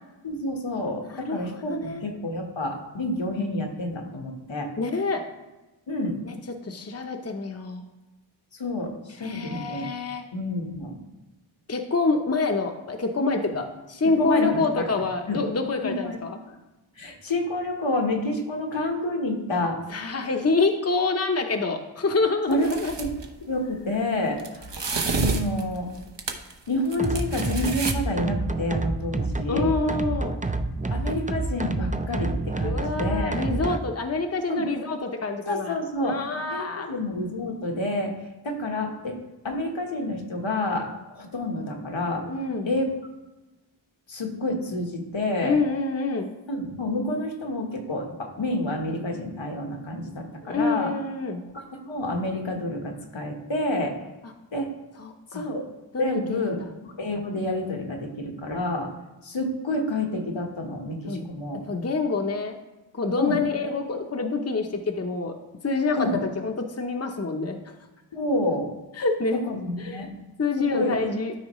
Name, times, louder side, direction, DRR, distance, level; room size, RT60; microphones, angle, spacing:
voice 1, 0.2-4.7 5.9-6.2 8.6-9.9 10.3-11.0 14.0-14.9 15.3-15.4 15.8-16.2 16.5-16.6 17.0-19.8 22.5-23.1 23.5-24.8 25.2-25.9 26.7-29.7 30.9-33.4 34.5-34.6 35.5-38.1 38.4-39.2 39.4-42.3 42.6-42.8 44.1-45.6 46.5-50.9 51.5-54.0 54.5-54.7 55.3-55.6 56.0-58.9 59.2-61.6 63.2-63.4 66.0-66.2 68.1-68.7 69.3-70.1 70.6-71.0, left 1 dB, 75° left, 2 dB, 1.4 m, -29 dB
voice 2, 1.1-1.4 1.7-2.0 4.8-5.2 6.2-6.3 6.6-7.8 9.2-10.2 11.7-16.4 19.9-22.9 29.5-30.4 32.6-35.8 36.0-36.9 42.3-42.7 45.4-46.3 50.5-51.4 55.0-55.5 55.9-56.7 61.1-61.2 61.5-62.6 62.9-65.3 65.6-67.6 69.0-69.4 69.8-70.0 70.4-71.3, left 3 dB, 30° left, 4 dB, 0.8 m, -27 dB
sound 1, 22.5-23.2 24.4-26.5 26.8-27.9, right 4 dB, 65° right, 1.0 m, -29 dB
sound 2, 27.0-33.8, right 2 dB, 15° right, 0.5 m, -28 dB
13.0 x 4.4 x 3.1 m, 1.1 s
wide cardioid pair, 45°, 46 cm